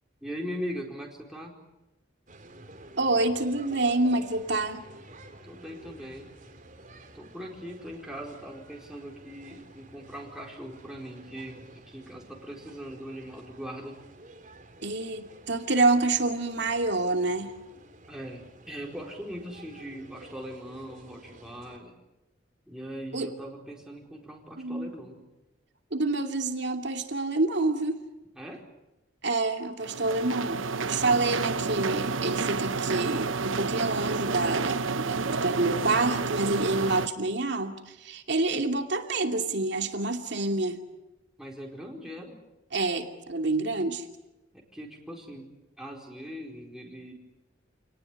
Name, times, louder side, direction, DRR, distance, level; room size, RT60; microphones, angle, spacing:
voice 1, 0.2-1.6 5.4-6.3 7.1-14.0 18.1-22.0 22.7-25.2 28.4-28.7 41.4-42.4 44.5-47.1, equal, 5° right, -1 dB, 4.4 m, -40 dB
sound 1, 2.3-21.8, right 2 dB, 40° right, 3.5 m, -51 dB
voice 2, 3.0-4.8 14.8-17.5 23.1-23.3 24.6-24.9 25.9-28.0 29.2-40.8 42.7-44.0, right 2 dB, 60° right, 5 dB, 2.7 m, -27 dB
sound 2, 29.8-37.1, right 4 dB, 85° right, 1.0 m, -30 dB
28.0 x 19.0 x 9.8 m, 1.0 s
head